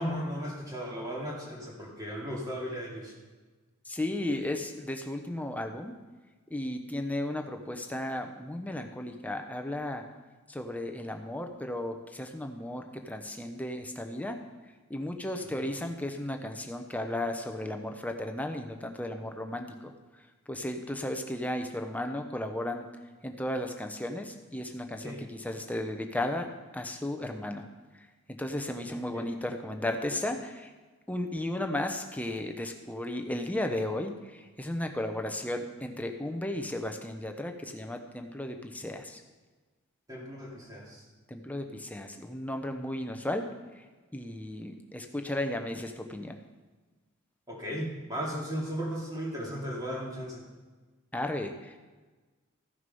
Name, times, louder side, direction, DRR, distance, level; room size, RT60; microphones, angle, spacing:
voice 1, 0.0-3.1 15.3-15.6 25.0-25.2 29.1-29.3 40.1-41.0 47.5-50.5, equal, 15° right, -3 dB, 2.3 m, -36 dB
voice 2, 3.8-5.9 6.5-10.0 10.5-14.4 14.9-19.9 20.5-22.9 23.2-27.6 27.9-30.7 31.1-39.2 41.3-43.5 43.7-43.8 44.1-46.4 51.1-51.8, left 1 dB, 5° left, 5 dB, 0.7 m, -34 dB
14.5 x 6.6 x 5.4 m, 1.3 s
head